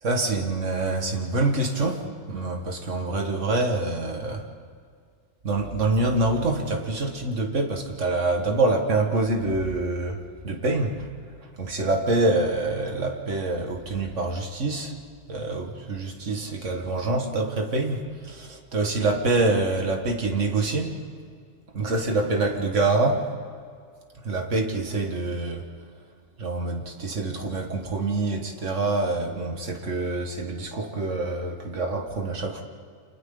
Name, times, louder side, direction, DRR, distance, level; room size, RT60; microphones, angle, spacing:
voice 1, 0.0-4.5 5.4-11.1 11.6-15.0 15.3-21.0 21.7-23.3 24.2-25.7 26.4-32.6, right 2 dB, 70° right, 3 dB, 2.2 m, -26 dB
30.0 x 27.0 x 3.9 m, 2.1 s
omnidirectional pair, 1.3 m